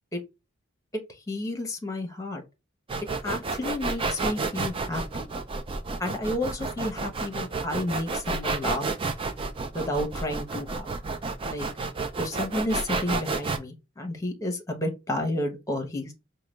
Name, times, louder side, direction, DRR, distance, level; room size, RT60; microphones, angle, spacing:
voice 1, 1.3-2.4 3.2-5.3 6.0-8.9 9.7-10.9 11.5-11.7 12.2-16.1, left 1 dB, 15° left, 0.9 m, -31 dB
sound 1, 2.9-13.6, right 3 dB, 25° right, 0.4 m, -30 dB
4.8 x 2.2 x 3.1 m
head